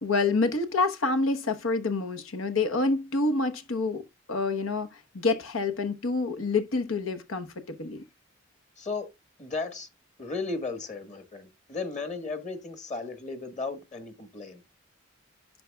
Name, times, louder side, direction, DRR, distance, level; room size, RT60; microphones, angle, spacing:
voice 1, 0.0-4.0 4.3-8.0, left 3 dB, 85° left, 1.1 m, -27 dB
voice 2, 8.8-9.1 9.4-9.9 10.2-14.6, left 3 dB, 35° left, 1.4 m, -35 dB
11.0 x 5.8 x 2.3 m
head